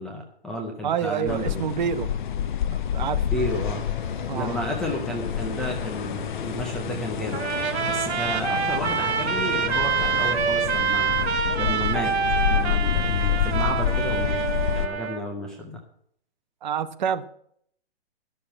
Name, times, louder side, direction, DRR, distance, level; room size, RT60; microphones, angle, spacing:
voice 1, 0.0-1.6 3.3-3.9 4.3-7.4 7.9-11.3 11.6-12.1 12.5-14.4 14.8-15.8, equal, ahead, -1 dB, 0.5 m, -32 dB
voice 2, 0.8-2.1 2.7-3.2 4.3-4.6 16.6-17.2, right 8 dB, 45° right, 12 dB, 1.0 m, -27 dB
sound 1, 1.3-14.9, left 9 dB, 50° left, 0.9 m, -28 dB
sound 2, 3.3-10.4, left 3 dB, 25° left, 2.3 m, -40 dB
Trumpet, 7.3-15.2, right 6 dB, 85° right, 2.1 m, -26 dB
13.0 x 6.8 x 8.7 m, 0.65 s
hypercardioid pair, 160°, 32 cm